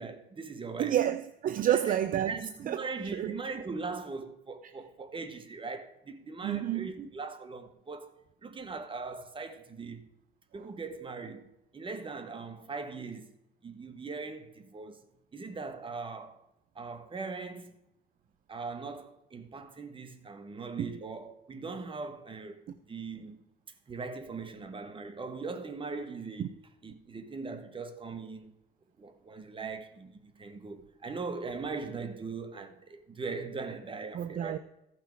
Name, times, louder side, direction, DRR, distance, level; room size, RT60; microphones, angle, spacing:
voice 1, 0.0-1.0 1.6-2.0 2.3-8.1 8.4-10.0 10.5-13.3 13.6-15.0 15.3-16.4 16.7-17.8 18.5-22.6 22.9-23.4 23.9-26.6 26.8-28.5 29.0-34.6, right 4 dB, 30° right, 1.4 m, -40 dB
voice 2, 0.8-2.3 2.7-2.8 3.1-3.4 6.4-6.9 20.8-20.9 26.4-26.5 34.1-34.6, right 11 dB, 50° right, 0.5 m, -29 dB
14.5 x 6.0 x 4.6 m
cardioid pair, 90°, 18 cm